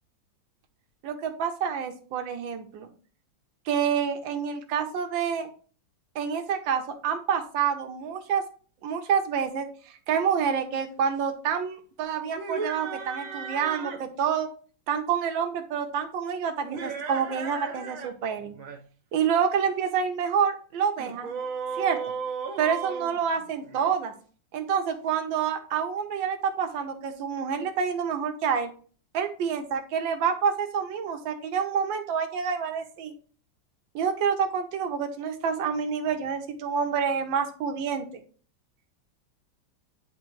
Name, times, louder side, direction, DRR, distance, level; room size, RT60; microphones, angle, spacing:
voice 1, 1.0-2.9 3.7-5.5 6.1-8.4 8.8-14.5 14.9-18.6 19.1-21.3 21.8-22.0 22.6-24.1 24.5-28.7 29.1-33.1 33.9-38.2, right 7 dB, 85° right, 5 dB, 1.6 m, -28 dB
sound 1, 12.3-14.1 16.6-18.1 18.4-18.8 21.0-23.9, right 5 dB, 50° right, 1.2 m, -35 dB
9.2 x 3.5 x 3.0 m, 0.41 s
omnidirectional pair, 2.1 m